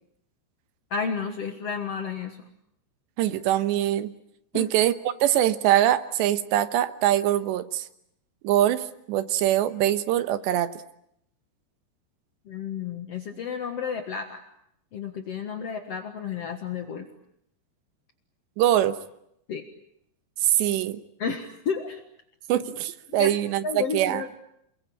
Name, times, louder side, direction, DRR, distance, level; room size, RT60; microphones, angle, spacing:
voice 1, 0.9-2.4 4.5-4.7 12.4-14.4 14.9-17.1 19.5-19.6 21.2-22.0 23.2-23.4 23.6-24.4, left 6 dB, 70° left, 6 dB, 1.5 m, -31 dB
voice 2, 3.2-4.1 4.5-7.9 8.4-10.7 18.6-19.0 20.4-21.0 22.5-24.2, right 12 dB, 75° right, 11 dB, 3.3 m, -23 dB
29.0 x 22.0 x 8.7 m, 0.76 s
omnidirectional pair, 5.3 m